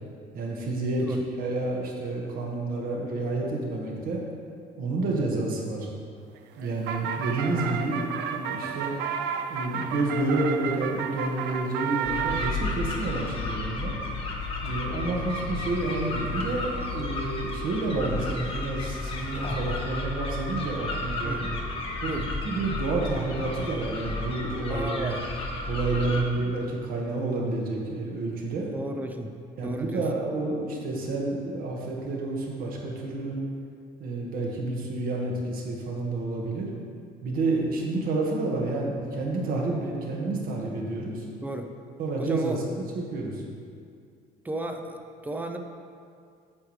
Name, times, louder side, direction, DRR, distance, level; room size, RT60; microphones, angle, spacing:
voice 1, 0.3-4.2 4.8-5.9 6.6-8.0 8.3-9.0 9.5-13.9 14.6-21.5 22.0-25.2 25.7-28.7 29.6-33.4 34.0-36.7 37.2-41.2 42.0-43.4, right 2 dB, 55° right, -1 dB, 1.5 m, -29 dB
sound 1, 6.4-12.5, right 8 dB, 75° right, 0.6 m, -32 dB
sound 2, 12.0-26.2, left 2 dB, 30° left, 1.1 m, -32 dB
voice 2, 24.7-25.2 26.2-26.3 28.7-29.3 29.6-30.0 41.4-41.7 42.2-42.6 44.4-45.6, right 1 dB, 10° right, 5 dB, 0.5 m, -34 dB
9.4 x 8.6 x 3.2 m, 2.3 s
cardioid pair, 170°, 18 cm